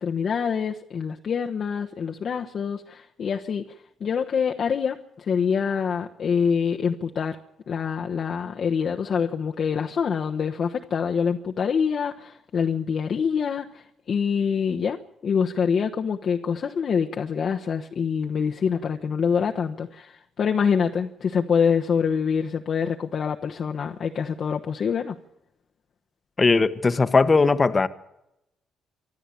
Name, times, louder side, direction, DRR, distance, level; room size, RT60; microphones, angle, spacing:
voice 1, 0.0-7.4 7.7-25.2, left 6 dB, 55° left, 1.1 m, -25 dB
voice 2, 26.4-27.9, left 4 dB, 30° left, 1.2 m, -19 dB
25.0 x 13.0 x 8.5 m
cardioid pair, 90°, 0 cm